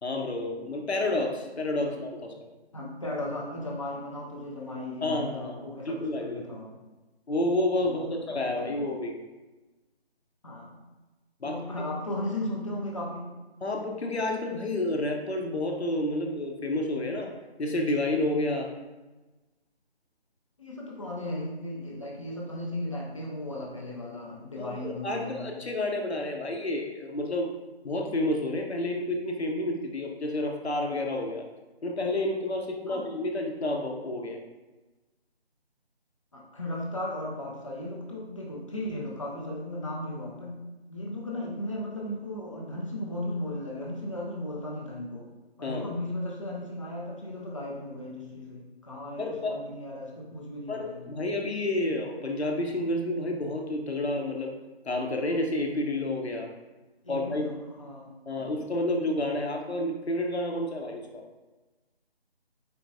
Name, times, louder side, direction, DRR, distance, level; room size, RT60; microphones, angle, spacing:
voice 1, 0.0-2.3 5.0-5.5 5.8-6.4 7.3-9.1 11.4-11.6 13.6-17.3 17.6-18.7 24.6-27.5 27.8-31.5 31.8-34.4 45.6-45.9 49.2-49.6 50.7-54.5 54.9-56.5 57.1-57.4 58.3-61.2, left 1 dB, 80° left, 2 dB, 0.9 m, -30 dB
voice 2, 2.7-6.8 7.8-8.8 10.4-10.8 11.4-13.3 20.6-25.6 32.9-33.1 36.3-40.6 40.9-45.3 45.6-51.2 57.0-58.1 58.4-58.5, left 1 dB, 30° left, -3 dB, 0.6 m, -36 dB
4.5 x 3.3 x 2.6 m, 1.2 s
figure-of-eight pair, 155°, 32 cm